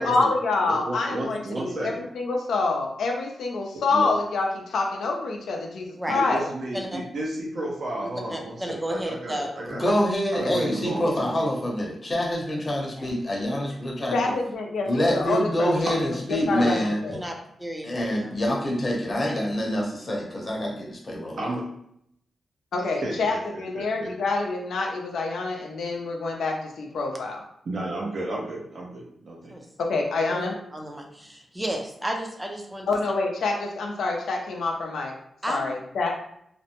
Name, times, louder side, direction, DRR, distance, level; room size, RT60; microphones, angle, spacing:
voice 1, 0.0-6.5 14.1-15.9 16.5-17.1 22.7-27.4 29.8-30.5 32.9-35.1 35.5-36.1, left 3 dB, 90° left, 1 dB, 0.5 m, -27 dB
voice 2, 0.6-2.0 3.9-4.0 6.1-9.9 10.3-11.5 15.8-16.0 16.5-16.8 21.4-21.6 23.0-24.1 27.6-29.5, right 1 dB, 60° right, -2 dB, 0.7 m, -32 dB
voice 3, 1.3-1.7 5.9-6.2 6.7-7.0 8.3-9.6 13.0-13.1 16.6-16.8 17.1-18.4 29.5-29.7 30.3-32.9 35.4-35.7, right 1 dB, 15° right, 1 dB, 0.5 m, -33 dB
voice 4, 9.7-14.2 14.9-17.0 17.8-21.4, equal, 35° left, -2 dB, 0.8 m, -26 dB
2.5 x 2.1 x 2.9 m, 0.73 s
cardioid pair, 95°, 0 cm